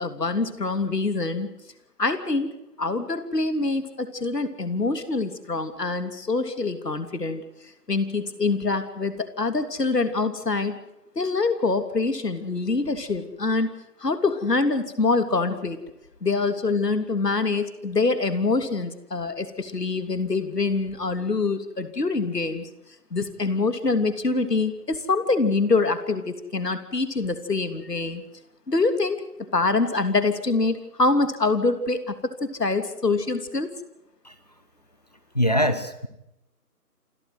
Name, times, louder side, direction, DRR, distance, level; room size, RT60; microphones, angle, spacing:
voice 1, 0.0-1.5 2.0-2.5 2.8-7.4 7.9-10.8 11.1-13.7 14.0-15.8 16.2-22.7 23.1-28.2 28.7-29.2 29.5-33.7, left 3 dB, 90° left, 9 dB, 3.2 m, -25 dB
voice 2, 35.3-36.1, equal, 25° left, 12 dB, 1.1 m, -22 dB
28.0 x 13.5 x 7.9 m, 0.86 s
figure-of-eight pair, 175°, 47 cm